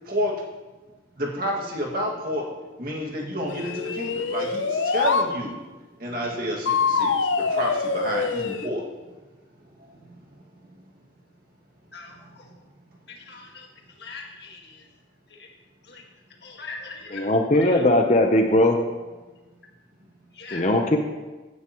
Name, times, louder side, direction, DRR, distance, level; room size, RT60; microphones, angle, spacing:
voice 1, 1.2-2.4 2.8-5.6 6.0-8.8, equal, 50° right, -1 dB, 2.1 m, -29 dB
sound 1, 3.5-5.3 6.7-8.7, left 4 dB, 75° left, 0.7 m, -25 dB
voice 2, 13.1-13.7 14.0-14.7 15.9-16.0 16.4-17.3 17.6-17.7 20.4-20.7, left 4 dB, 55° left, 1 dB, 1.7 m, -40 dB
voice 3, 17.1-18.8 20.5-21.0, left 1 dB, 35° left, 4 dB, 0.8 m, -19 dB
16.0 x 9.6 x 3.0 m, 1.2 s
head